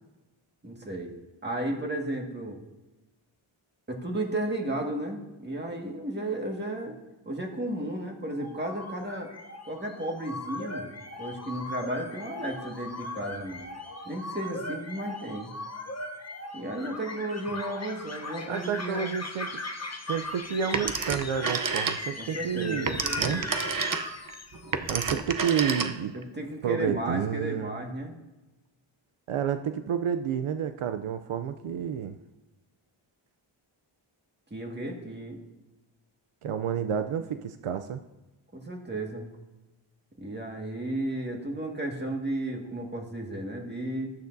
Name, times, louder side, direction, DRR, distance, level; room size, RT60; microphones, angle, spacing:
voice 1, 0.6-1.1 1.4-2.6 3.9-7.0 7.3-9.3 9.7-10.9 11.2-13.7 14.1-15.5 16.5-19.1 22.2-23.5 25.1-25.2 26.1-28.1 34.5-35.4 38.5-39.3 40.2-44.1, right 1 dB, 20° right, 1 dB, 1.8 m, -34 dB
sound 1, 8.3-24.9, left 2 dB, 30° left, 0.9 m, -39 dB
voice 2, 18.5-19.6 20.1-23.4 24.9-26.2 26.6-27.7 29.3-32.2 36.4-38.0, right 8 dB, 80° right, 9 dB, 0.6 m, -30 dB
Telephone, 20.7-22.3 22.6-26.2, right 5 dB, 40° right, 0.8 m, -30 dB
15.0 x 12.0 x 2.7 m, 1.1 s
wide cardioid pair, 105°, 50 cm